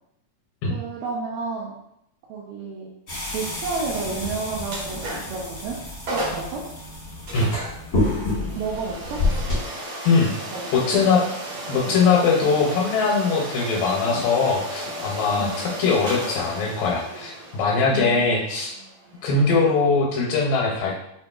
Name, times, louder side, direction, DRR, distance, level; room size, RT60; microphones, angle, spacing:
voice 1, 0.7-1.7 2.3-2.9 3.3-5.8 6.1-6.6 8.6-9.2 10.5-10.7 12.4-12.5 15.4-15.6 17.9-18.5, right 4 dB, 85° right, -4 dB, 2.2 m, -31 dB
sound 1, 3.1-9.6, left 2 dB, 45° left, 0.9 m, -28 dB
sound 2, 4.7-5.4 5.8-5.9 6.1-6.5 7.3-20.0, right 1 dB, 60° right, 1.9 m, -34 dB
voice 2, 10.7-11.2 11.7-18.7 19.2-21.0, left 4 dB, 85° left, -2 dB, 2.3 m, -21 dB
5.7 x 2.5 x 2.2 m, 0.81 s
omnidirectional pair, 3.8 m